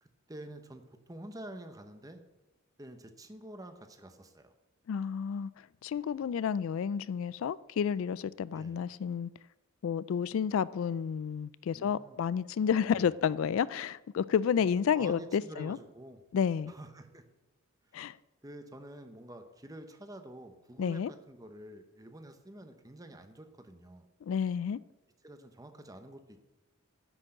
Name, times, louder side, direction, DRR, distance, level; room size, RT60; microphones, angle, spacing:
voice 1, 0.0-2.2 2.8-4.5 8.5-8.8 11.7-12.2 12.9-13.1 14.6-14.7 14.9-16.2 16.7-17.3 18.4-24.1 25.2-26.4, right 1 dB, 15° right, 0.8 m, -48 dB
voice 2, 4.9-5.5 5.8-9.3 9.8-15.8 16.3-16.7 17.9-18.2 20.8-21.1 24.2-24.8, left 7 dB, 70° left, 0.3 m, -30 dB
9.9 x 6.2 x 7.7 m
head